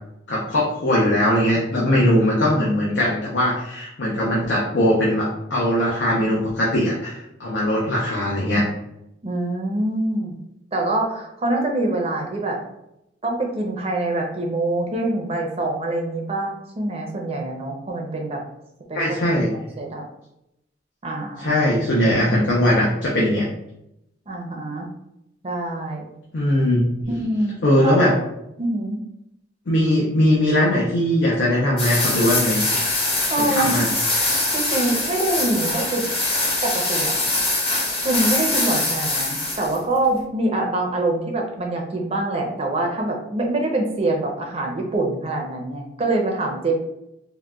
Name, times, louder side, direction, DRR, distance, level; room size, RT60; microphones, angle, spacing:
voice 1, 0.3-8.7 18.9-19.5 21.4-23.5 26.3-26.8 27.6-28.1 29.7-32.6 33.4-33.9, left 1 dB, 75° left, -5 dB, 0.6 m, -20 dB
voice 2, 9.2-10.3 10.7-12.6 13.2-18.4 18.9-19.0 19.8-20.0 21.0-21.6 24.3-24.9 25.4-26.0 27.1-28.0 28.6-29.0 33.3-33.8 34.2-36.0 36.6-37.1 38.0-46.7, right 2 dB, 35° right, 0 dB, 0.6 m, -25 dB
sound 1, 31.8-39.8, left 2 dB, 30° left, 0.8 m, -23 dB
3.8 x 2.2 x 2.3 m, 0.83 s
head